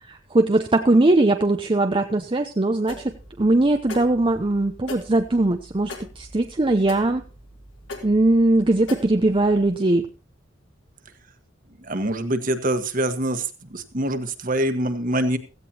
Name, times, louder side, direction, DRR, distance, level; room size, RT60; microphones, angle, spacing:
voice 1, 0.1-7.2 8.0-10.1, right 2 dB, 25° right, 6 dB, 0.7 m, -20 dB
sound 1, 2.9-9.7, left 2 dB, 70° left, 3.5 m, -41 dB
voice 2, 11.8-13.4 13.7-15.4, right 1 dB, 45° right, 8 dB, 1.5 m, -24 dB
16.5 x 15.0 x 3.0 m, 0.32 s
head